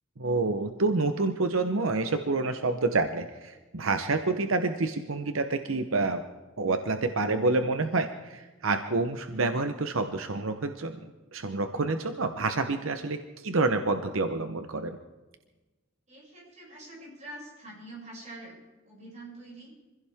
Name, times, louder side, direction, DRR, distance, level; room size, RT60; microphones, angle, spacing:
voice 1, 0.2-6.2 6.6-15.0, right 3 dB, 85° right, 7 dB, 0.9 m, -28 dB
voice 2, 16.1-18.6 18.9-19.7, right 1 dB, 35° right, -3 dB, 6.5 m, -45 dB
25.0 x 16.0 x 3.6 m, 1.2 s
head